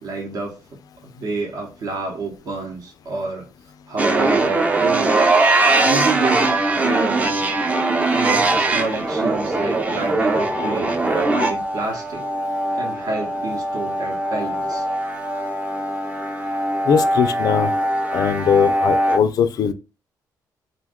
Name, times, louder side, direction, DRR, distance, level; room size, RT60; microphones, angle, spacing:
voice 1, 0.0-3.5 3.9-5.4 5.8-7.5 8.1-12.2 12.7-14.8, right 3 dB, 60° right, 0.8 m, -29 dB
sound 1, 4.0-19.2, right 2 dB, 20° right, 0.5 m, -21 dB
voice 2, 16.8-17.7 18.1-19.7, left 7 dB, 60° left, 0.4 m, -19 dB
2.6 x 2.2 x 3.5 m
cardioid pair, 130°, 7 cm